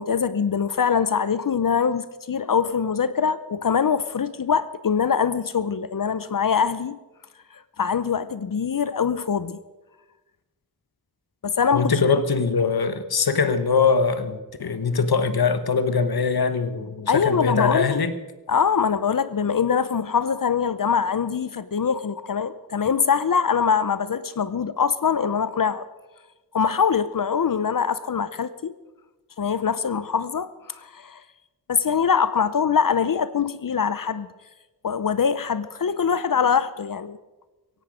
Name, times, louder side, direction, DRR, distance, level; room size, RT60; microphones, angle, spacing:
voice 1, 0.0-7.0 7.8-9.6 11.4-11.9 17.1-18.0 18.5-25.9 26.5-28.7 29.4-31.2 31.7-34.3 34.8-37.2, left 6 dB, 60° left, 15 dB, 0.7 m, -23 dB
voice 2, 11.7-18.1, left 5 dB, 90° left, 12 dB, 1.2 m, -22 dB
17.0 x 16.5 x 5.1 m, 1.1 s
wide cardioid pair, 75°, 37 cm